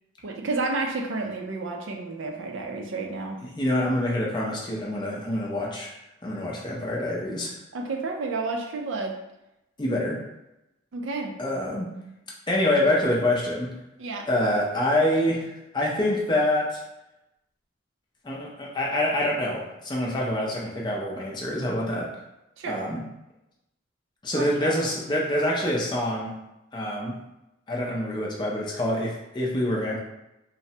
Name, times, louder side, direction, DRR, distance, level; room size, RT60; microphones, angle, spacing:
voice 1, 0.2-3.4 7.7-9.1 10.9-11.3 14.0-14.3 22.6-22.8 24.3-24.8, right 3 dB, 70° right, 2 dB, 0.4 m, -31 dB
voice 2, 3.4-5.9 6.2-7.6 9.8-10.2 11.4-11.9 12.5-13.7 14.3-16.8 18.2-22.1 22.6-23.0 24.2-26.4 26.7-27.2 27.7-30.0, left 1 dB, 20° left, -3 dB, 0.5 m, -26 dB
3.2 x 2.0 x 2.7 m, 0.91 s
head